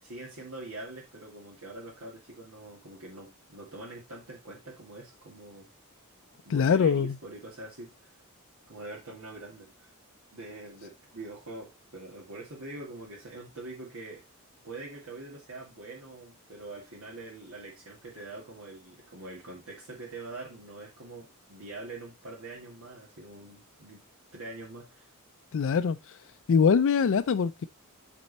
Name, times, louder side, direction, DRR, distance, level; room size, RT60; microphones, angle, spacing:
voice 1, 0.0-5.7 6.4-8.2 8.7-9.9 10.3-14.2 14.6-24.0 24.3-25.1, right 2 dB, 70° right, 2.4 m, -44 dB
voice 2, 6.5-7.1 25.5-26.0 26.5-27.6, left 6 dB, 60° left, 0.4 m, -23 dB
8.9 x 4.4 x 4.1 m
head